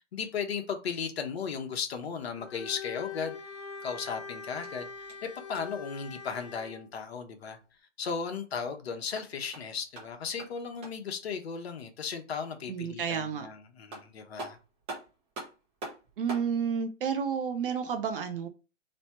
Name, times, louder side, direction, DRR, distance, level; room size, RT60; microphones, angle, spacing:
voice 1, 0.1-3.4 3.8-7.6 8.0-14.6, left 6 dB, 55° left, 1.0 m, -36 dB
Bowed string instrument, 2.4-6.9, left 6 dB, 25° left, 1.0 m, -42 dB
sound 1, 4.6-5.9 8.9-11.2 13.4-13.5 13.9-16.5, right 2 dB, 15° right, 1.1 m, -44 dB
voice 2, 12.7-13.5 16.2-18.5, right 7 dB, 45° right, 0.8 m, -31 dB
3.3 x 2.8 x 4.3 m
hypercardioid pair, 145°, 37 cm